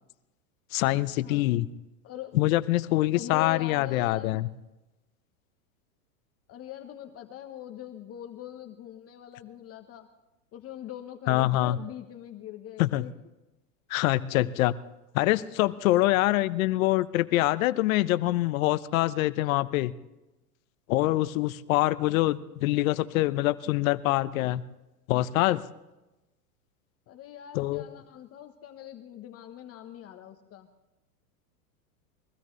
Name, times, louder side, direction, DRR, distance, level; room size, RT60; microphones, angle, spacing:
voice 1, 0.7-1.7 2.3-4.5 11.3-11.8 12.8-13.0 13.9-14.7 15.1-19.9 20.9-24.6 25.1-25.6 27.5-27.8, left 17 dB, 60° left, 14 dB, 0.9 m, -25 dB
voice 2, 2.0-2.4 3.1-4.4 6.5-10.1 10.5-13.1 27.1-30.7, left 11 dB, 30° left, 6 dB, 1.1 m, -42 dB
22.5 x 16.0 x 3.2 m, 1.0 s
hypercardioid pair, 120°, 46 cm